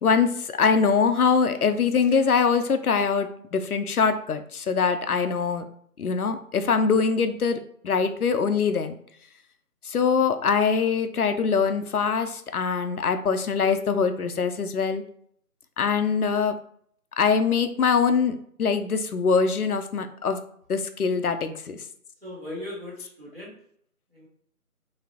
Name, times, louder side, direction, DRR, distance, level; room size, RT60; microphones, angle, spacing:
voice 1, 0.0-5.7 6.0-7.6 7.8-9.0 9.8-15.0 15.8-16.6 17.2-20.4 20.7-21.8, left 5 dB, 75° left, 9 dB, 0.6 m, -23 dB
voice 2, 22.2-23.5 24.1-24.3, left 1 dB, 40° right, -6 dB, 1.2 m, -38 dB
4.0 x 3.0 x 2.8 m, 0.65 s
figure-of-eight pair, 180°, 46 cm